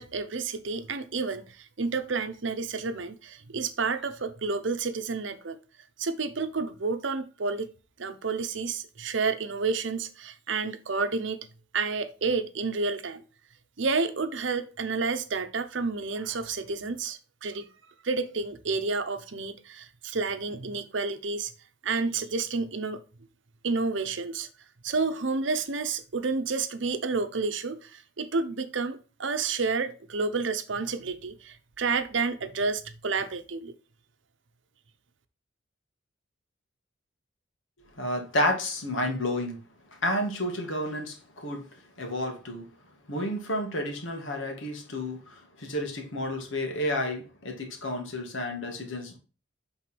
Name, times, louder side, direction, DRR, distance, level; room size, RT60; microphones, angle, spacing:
voice 1, 0.0-5.6 6.0-7.7 8.0-11.5 11.7-13.2 13.8-17.7 18.0-21.5 21.8-23.0 23.6-24.5 24.8-33.7, right 4 dB, 75° right, 0.8 m, -30 dB
voice 2, 38.0-39.6 40.0-41.6 42.0-42.6 43.1-49.2, left 1 dB, 80° left, 1.9 m, -31 dB
5.9 x 3.9 x 6.1 m
head